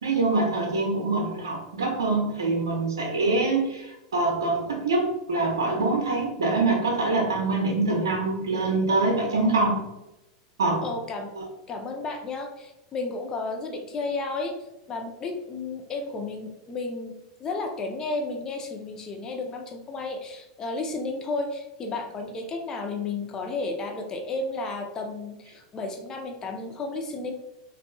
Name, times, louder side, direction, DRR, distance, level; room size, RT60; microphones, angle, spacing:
voice 1, 0.0-9.9 10.6-10.8 11.4-11.5, right 3 dB, 80° right, 0 dB, 0.5 m, -24 dB
voice 2, 10.8-11.3 11.7-14.6 14.9-27.3, left 3 dB, 30° left, 3 dB, 0.6 m, -32 dB
3.6 x 2.4 x 2.3 m, 0.94 s
hypercardioid pair, 95°, 2 cm